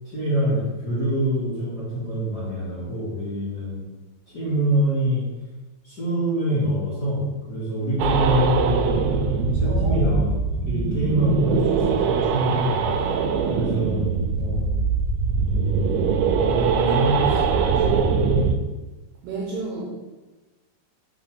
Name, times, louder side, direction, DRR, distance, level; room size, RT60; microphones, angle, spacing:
voice 1, 0.0-3.8 4.3-5.2 5.8-7.2 7.5-9.0 9.5-10.3 10.7-12.8 13.5-14.8 16.4-18.3, equal, 85° left, -11 dB, 0.8 m, -25 dB
sound 1, 8.0-18.6, right 5 dB, 90° right, 2.9 m, -22 dB
voice 2, 9.6-10.2 19.2-19.8, right 3 dB, 70° right, -3 dB, 2.2 m, -31 dB
6.3 x 3.2 x 5.8 m, 1.2 s
omnidirectional pair, 5.1 m